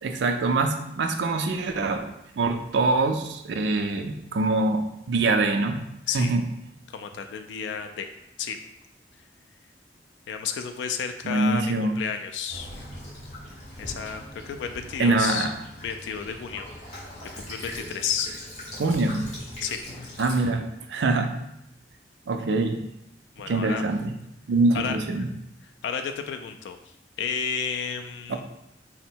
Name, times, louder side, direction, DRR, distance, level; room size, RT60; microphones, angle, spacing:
voice 1, 0.0-2.0 2.3-5.8 6.1-6.4 11.2-12.0 15.0-15.5 18.8-19.3 20.2-21.4 22.3-22.8 23.4-24.1 24.5-25.3 28.3-28.4, right 3 dB, 75° right, 6 dB, 0.4 m, -24 dB
voice 2, 6.9-8.1 8.4-8.6 10.3-12.7 13.8-15.5 15.8-16.7 17.5-18.3 19.6-19.8 23.4-23.8 24.7-25.0 25.8-26.8 27.2-28.4, left 7 dB, 90° left, 6 dB, 0.3 m, -31 dB
Child speech kid speaking / Bird vocalization bird call bird song / Stream, 12.5-20.5, left 1 dB, 40° left, 1.2 m, -41 dB
3.6 x 2.1 x 4.3 m, 0.82 s
head